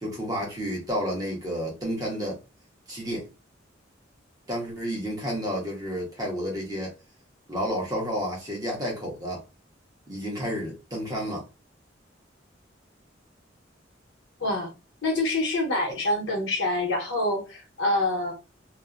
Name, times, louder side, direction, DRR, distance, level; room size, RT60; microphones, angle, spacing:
voice 1, 0.0-2.4 2.9-3.3 4.5-7.0 7.5-9.4 10.1-11.5, equal, 20° right, 0.9 m, -31 dB
voice 2, 14.4-14.7 15.0-18.3, left 2 dB, 80° left, 0.9 m, -26 dB
2.6 x 2.1 x 2.4 m
head